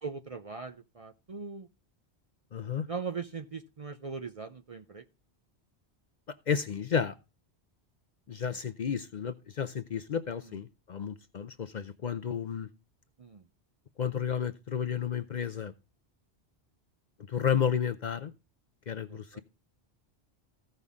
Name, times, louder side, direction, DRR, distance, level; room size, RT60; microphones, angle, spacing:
voice 1, 0.0-1.7 2.9-5.0 8.5-8.6 10.5-10.6 13.2-13.4 19.1-19.4, right 5 dB, 40° right, 0.5 m, -40 dB
voice 2, 2.5-2.9 6.5-7.1 8.3-12.7 14.0-15.7 17.3-18.3 18.9-19.4, left 7 dB, 50° left, 0.6 m, -32 dB
15.0 x 5.5 x 3.5 m
omnidirectional pair, 1.1 m